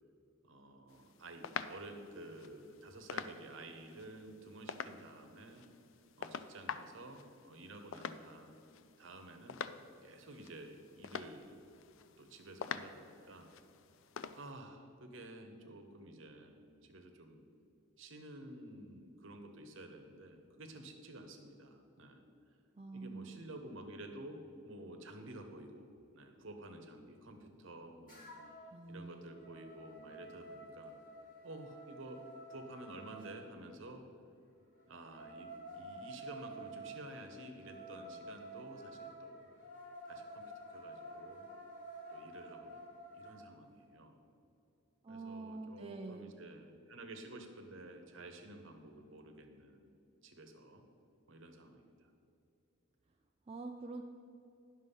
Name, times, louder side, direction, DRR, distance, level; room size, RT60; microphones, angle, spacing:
voice 1, 0.4-5.6 6.2-8.5 9.0-9.6 10.0-11.6 12.2-13.5 14.4-17.4 18.0-22.2 22.9-25.9 26.1-28.3 28.9-30.9 31.4-32.2 32.5-34.0 34.9-39.5 40.1-41.5 42.1-44.2 45.1-49.9 50.2-50.8 51.3-52.1, right 1 dB, 60° right, 5 dB, 1.0 m, -51 dB
sound 1, 0.9-14.5, left 7 dB, 65° left, 0.4 m, -47 dB
voice 2, 22.7-23.4 28.7-29.3 45.0-46.4 53.5-54.0, right 3 dB, 25° right, 2 dB, 0.4 m, -46 dB
sound 2, 28.1-28.7 29.1-33.3 34.8-43.4, right 1 dB, 40° left, 2.4 m, -51 dB
9.8 x 6.3 x 5.5 m, 2.8 s
head